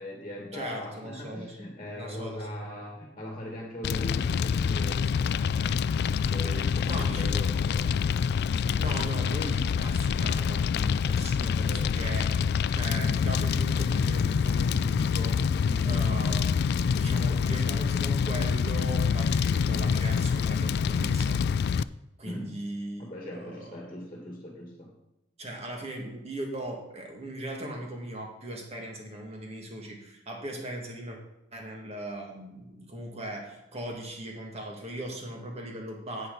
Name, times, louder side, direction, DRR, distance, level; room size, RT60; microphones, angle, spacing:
voice 1, 0.0-5.7 6.3-7.9 11.3-11.8 15.6-16.0 22.2-22.6 23.0-24.9, left 1 dB, 25° left, -1 dB, 1.9 m, -40 dB
voice 2, 0.5-1.7 2.0-2.5 6.8-7.4 8.8-12.3 12.7-15.4 15.8-21.4 22.2-23.8 25.4-31.2 31.5-36.3, right 1 dB, 35° right, 1 dB, 2.2 m, -38 dB
Fire, 3.8-21.8, left 6 dB, 60° left, 0.3 m, -26 dB
10.0 x 8.2 x 4.0 m, 0.91 s
head